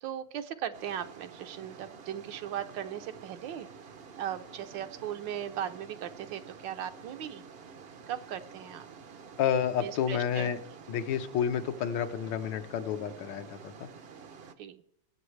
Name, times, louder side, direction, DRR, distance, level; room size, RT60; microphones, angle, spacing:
voice 1, 0.0-3.7 4.2-7.4 8.1-8.9 9.8-10.5 14.6-14.8, right 10 dB, 80° right, 9 dB, 1.4 m, -38 dB
sound 1, 0.7-14.5, right 6 dB, 60° right, 0.6 m, -49 dB
voice 2, 9.4-10.6 10.9-13.9, left 8 dB, 80° left, 9 dB, 1.5 m, -30 dB
21.5 x 7.9 x 3.2 m, 0.73 s
omnidirectional pair, 2.0 m